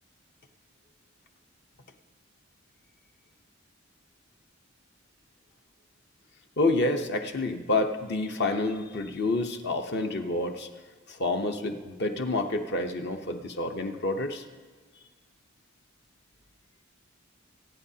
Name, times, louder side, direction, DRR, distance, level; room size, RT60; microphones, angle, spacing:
voice 1, 6.6-10.7 11.2-14.4, left 2 dB, 55° left, 5 dB, 0.9 m, -28 dB
26.5 x 9.2 x 2.8 m, 1.4 s
head